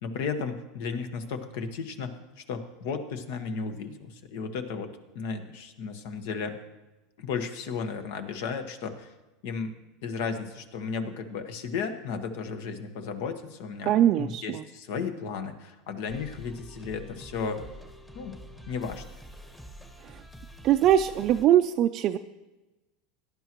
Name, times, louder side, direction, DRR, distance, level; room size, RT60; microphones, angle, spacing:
voice 1, 0.0-6.6 7.2-9.1 9.4-9.8 10.0-17.6 18.1-18.3 18.7-19.0, left 5 dB, 70° left, 7 dB, 1.4 m, -34 dB
voice 2, 13.8-14.6 20.0-20.2 20.6-22.2, right 11 dB, 45° right, 5 dB, 0.4 m, -22 dB
sound 1, 16.1-21.4, equal, 5° left, 1.2 m, -46 dB
17.5 x 11.0 x 3.1 m, 1.1 s
supercardioid pair, 130°, 0 cm